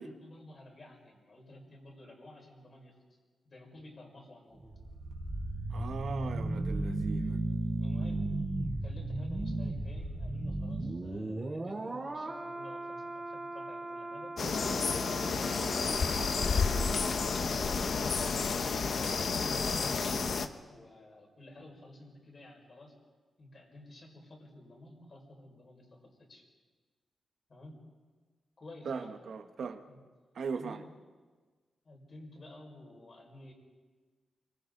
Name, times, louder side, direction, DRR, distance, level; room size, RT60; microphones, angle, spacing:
voice 1, 0.0-2.9 3.5-4.8 7.8-8.3 8.8-14.4 17.9-19.0 19.4-22.9 23.4-26.4 27.5-27.8 28.6-29.1 29.9-30.0 30.5-30.9 31.8-33.5, left 1 dB, 40° left, 0 dB, 5.4 m, -52 dB
sound 1, 4.5-19.5 19.8-20.0, right 2 dB, 25° right, 3.6 m, -37 dB
voice 2, 5.7-7.4 28.8-29.8 30.3-30.8, right 5 dB, 70° right, 7 dB, 1.4 m, -39 dB
sound 2, 14.4-20.5, left 5 dB, 55° left, 1.1 m, -30 dB
30.0 x 24.0 x 4.0 m, 1.4 s
wide cardioid pair, 135°, 0 cm